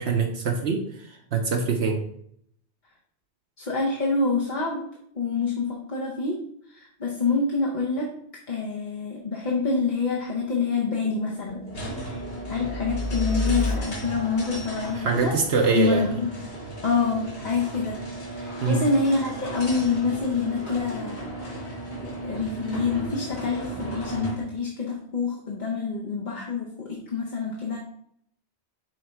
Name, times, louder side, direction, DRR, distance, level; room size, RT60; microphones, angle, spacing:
voice 1, 0.0-2.0 14.9-16.1 18.6-18.8, right 4 dB, 70° right, 2 dB, 1.0 m, -24 dB
voice 2, 3.6-4.8 5.1-6.4 6.7-8.1 8.5-12.2 12.5-15.4 15.7-16.3 16.8-18.0 18.3-27.8, left 4 dB, 45° left, -2 dB, 1.1 m, -27 dB
sound 1, 9.8-16.6, left 2 dB, 10° left, 1.0 m, -34 dB
sound 2, 11.7-24.5, right 1 dB, 70° left, 2.4 m, -36 dB
6.4 x 3.8 x 4.5 m, 0.68 s
omnidirectional pair, 1.2 m